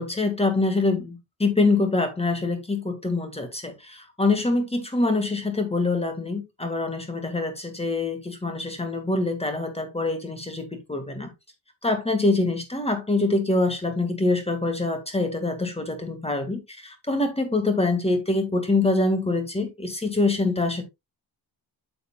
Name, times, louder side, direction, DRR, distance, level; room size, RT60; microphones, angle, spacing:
voice 1, 0.0-11.3 11.8-20.8, left 2 dB, 15° left, 1.8 m, -25 dB
8.8 x 6.8 x 2.3 m
wide cardioid pair, 125°, 46 cm